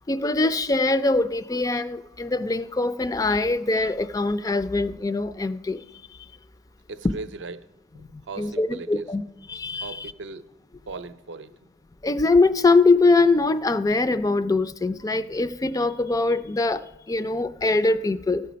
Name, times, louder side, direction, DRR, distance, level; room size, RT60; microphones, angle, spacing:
voice 1, 0.1-6.3 8.1-9.2 9.5-10.1 12.0-18.6, left 3 dB, 20° left, 0.3 m, -23 dB
voice 2, 6.9-7.7 7.9-9.1 9.8-10.5 10.9-11.7, right 3 dB, 70° right, 0.6 m, -38 dB
16.0 x 6.7 x 5.1 m
head